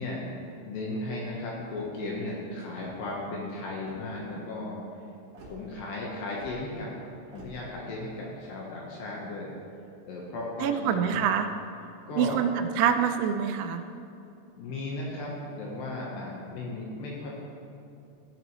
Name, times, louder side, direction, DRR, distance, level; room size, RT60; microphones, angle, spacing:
voice 1, 0.0-4.8 5.4-6.9 7.3-9.5 10.1-11.3 12.1-12.4 14.6-17.3, left 2 dB, 70° left, -4 dB, 2.9 m, -36 dB
sound 1, 1.7-2.1 2.7-3.2 3.8-4.2 5.3-5.6 6.3-6.6 7.3-7.6, right 4 dB, 65° right, 2.0 m, -49 dB
voice 2, 10.6-11.5 12.1-13.8, right 8 dB, 85° right, 7 dB, 2.5 m, -26 dB
13.5 x 9.0 x 3.1 m, 2.7 s
omnidirectional pair, 5.7 m